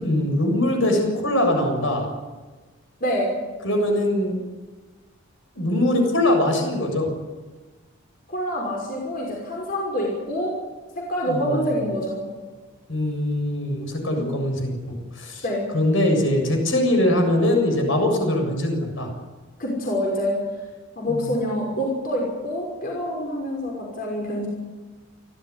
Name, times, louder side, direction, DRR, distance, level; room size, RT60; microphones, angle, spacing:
voice 1, 0.0-2.1 3.6-4.4 5.6-7.1 11.2-11.6 12.9-15.4 15.7-19.1 21.1-21.3, left 1 dB, 65° left, 3 dB, 7.3 m, -22 dB
voice 2, 3.0-3.3 8.3-10.5 10.9-12.3 14.2-14.3 15.4-15.7 19.6-20.4 21.0-24.5, equal, 45° left, -1 dB, 5.9 m, -26 dB
29.5 x 13.0 x 9.9 m, 1.3 s
head